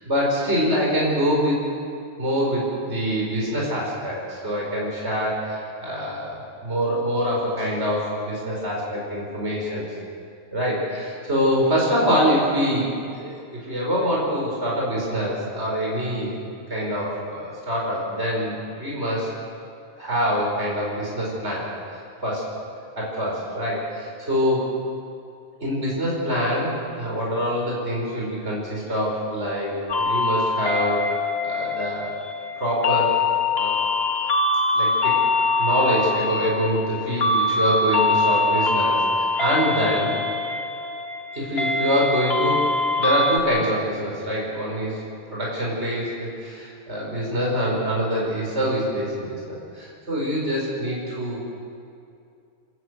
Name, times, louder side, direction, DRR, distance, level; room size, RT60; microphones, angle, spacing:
voice 1, 0.0-1.6 2.2-9.8 10.5-12.9 13.2-16.4 16.7-19.3 20.0-21.6 22.2-22.4 23.0-24.7 25.6-31.1 31.4-32.1 32.6-33.2 33.5-33.8 34.7-35.2 35.6-40.2 41.3-45.0 45.3-51.5, equal, 55° right, -4 dB, 5.5 m, -25 dB
sound 1, 29.9-43.4, left 3 dB, 50° left, 1.4 m, -23 dB
28.5 x 14.0 x 8.1 m, 2.5 s
omnidirectional pair, 1.4 m